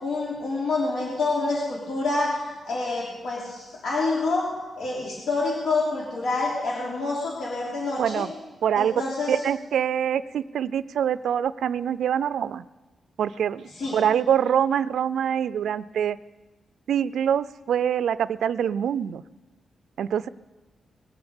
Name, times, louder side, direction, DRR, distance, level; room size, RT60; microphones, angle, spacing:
voice 1, 0.0-4.5 4.8-8.3 8.7-9.3 13.8-14.0, left 3 dB, 75° left, -4 dB, 3.4 m, -27 dB
voice 2, 8.0-8.3 8.6-9.0 9.3-12.6 13.2-13.6 13.9-16.2 16.9-19.2 20.0-20.3, right 9 dB, 85° right, 17 dB, 0.4 m, -24 dB
20.0 x 7.9 x 7.0 m, 1.2 s
wide cardioid pair, 135°, 0 cm